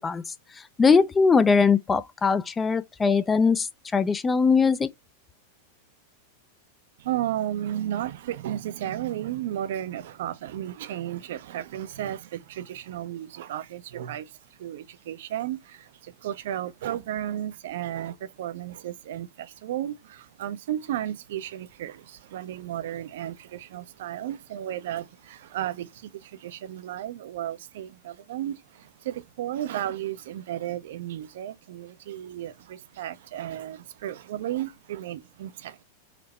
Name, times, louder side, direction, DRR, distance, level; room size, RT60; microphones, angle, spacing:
voice 1, 0.0-4.9, left 5 dB, 15° left, 0.4 m, -21 dB
voice 2, 7.0-35.8, right 12 dB, 55° right, 0.5 m, -34 dB
4.2 x 2.7 x 4.2 m
figure-of-eight pair, 90°, 0 cm